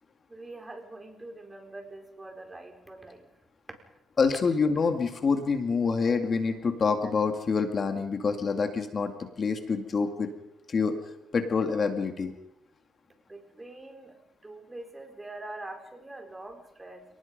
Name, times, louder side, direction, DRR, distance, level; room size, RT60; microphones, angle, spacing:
voice 1, 0.3-3.3 13.3-14.1 14.4-17.0, right 2 dB, 20° right, 4 dB, 4.6 m, -44 dB
voice 2, 4.2-10.3 10.7-12.3, left 5 dB, 45° left, 6 dB, 2.2 m, -27 dB
29.5 x 19.0 x 5.4 m, 0.83 s
cardioid pair, 90°, 0 cm